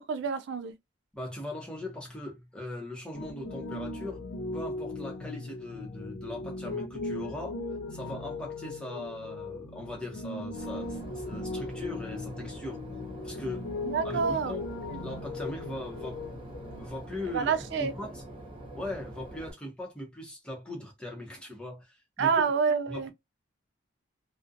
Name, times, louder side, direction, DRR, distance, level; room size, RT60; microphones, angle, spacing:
voice 1, 0.1-0.8 13.9-14.5 14.9-15.0 17.3-17.9 22.2-23.1, right 5 dB, 60° right, 0.3 m, -28 dB
voice 2, 1.1-4.2 4.5-7.6 7.9-12.8 13.2-13.7 14.0-14.6 15.0-16.2 16.7-17.5 17.8-18.2 18.7-22.4 22.9-23.1, left 1 dB, 5° left, 0.7 m, -39 dB
Piano, 3.1-16.8, left 2 dB, 60° left, 0.4 m, -38 dB
Boat Water vehicle / Engine, 10.5-19.5, right 1 dB, 25° right, 0.8 m, -45 dB
2.4 x 2.1 x 2.5 m
head